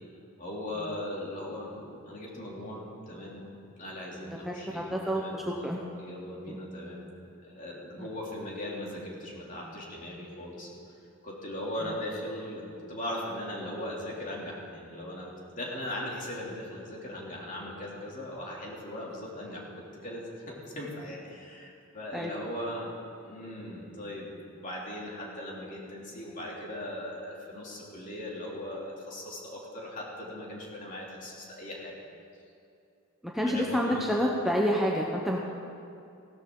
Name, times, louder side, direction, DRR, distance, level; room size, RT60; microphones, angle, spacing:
voice 1, 0.4-5.7 6.0-7.1 7.4-10.7 11.2-19.6 19.9-22.9 23.2-32.0 33.3-34.0, left 1 dB, 40° left, -4 dB, 2.8 m, -39 dB
voice 2, 4.5-5.3 5.6-5.8 8.0-8.1 22.1-22.3 33.2-35.4, equal, ahead, -2 dB, 0.8 m, -28 dB
17.0 x 13.0 x 3.8 m, 2.6 s
head